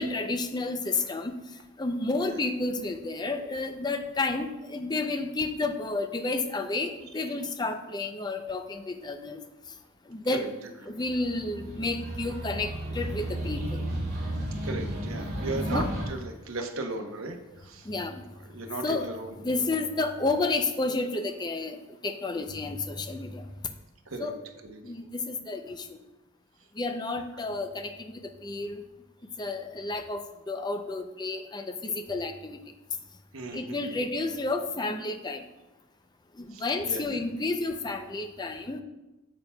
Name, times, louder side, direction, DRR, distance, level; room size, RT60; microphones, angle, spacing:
voice 1, 0.0-1.3 1.8-9.4 10.1-10.5 10.9-13.8 15.4-15.9 17.9-18.2 18.8-19.1 19.4-21.8 22.0-23.4 24.2-24.4 24.8-25.8 26.8-28.1 28.4-28.8 29.4-30.2 30.5-32.6 33.5-35.4 36.4-38.8, left 3 dB, 20° left, 7 dB, 0.4 m, -31 dB
sound 1, 11.1-16.0, right 1 dB, 45° right, 2.4 m, -33 dB
voice 2, 14.6-17.4 17.6-17.9 18.5-19.7 24.1-24.3 24.6-24.8 33.3-33.8 36.5-37.1, right 2 dB, 70° right, 4 dB, 0.9 m, -36 dB
8.8 x 7.0 x 2.3 m, 1.0 s
head